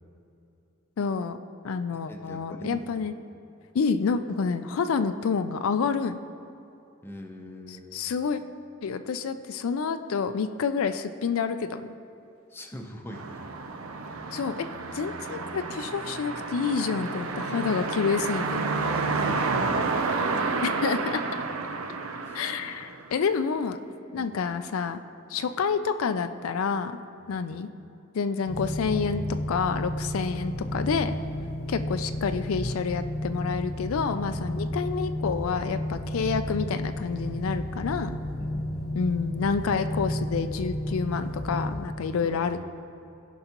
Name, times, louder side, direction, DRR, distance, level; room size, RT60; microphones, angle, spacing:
voice 1, 1.0-1.4 1.6-3.1 3.7-6.2 7.7-8.4 8.8-11.9 14.3-14.7 14.9-18.6 20.6-21.2 22.3-23.8 24.1-25.0 25.3-26.9 27.3-27.7 28.1-29.2 29.5-31.1 31.7-38.1 38.9-42.6, left 5 dB, 80° left, 9 dB, 0.4 m, -28 dB
voice 2, 2.1-2.9 7.0-8.1 12.5-13.4 17.5-17.7 18.7-19.9 22.2-22.5 24.1-24.3 25.4-25.5 27.2-27.4 30.6-31.0 31.3-31.7 38.4-38.9 42.1-42.5, equal, 10° left, 2 dB, 0.7 m, -43 dB
sound 1, 13.1-23.4, right 4 dB, 80° right, 0.6 m, -30 dB
sound 2, 28.4-41.8, left 1 dB, 65° left, 1.0 m, -32 dB
16.0 x 5.5 x 2.9 m, 2.8 s
head